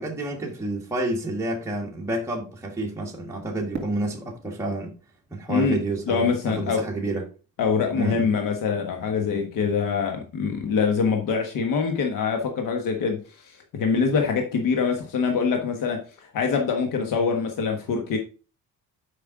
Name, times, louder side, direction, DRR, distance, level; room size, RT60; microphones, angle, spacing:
voice 1, 0.0-5.0 5.3-7.3 7.9-8.3, right 2 dB, 10° right, 1.6 m, -29 dB
Fireworks, 3.7-6.8, right 5 dB, 30° right, 2.9 m, -42 dB
voice 2, 5.5-5.8 6.1-6.8 7.6-18.2, left 5 dB, 70° left, 1.4 m, -24 dB
7.5 x 5.5 x 3.7 m
cardioid pair, 125°, 33 cm